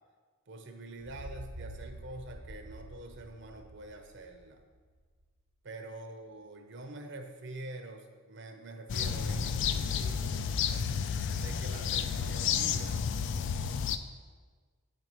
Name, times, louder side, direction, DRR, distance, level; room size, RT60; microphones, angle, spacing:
voice 1, 0.5-4.6 5.6-10.4 11.3-13.0, right 2 dB, 55° right, 5 dB, 0.6 m, -46 dB
sound 1, 1.0-4.9, right 1 dB, 80° right, 1.0 m, -47 dB
sound 2, 8.9-14.0, left 7 dB, 55° left, 0.3 m, -31 dB
9.0 x 5.2 x 3.0 m, 1.5 s
head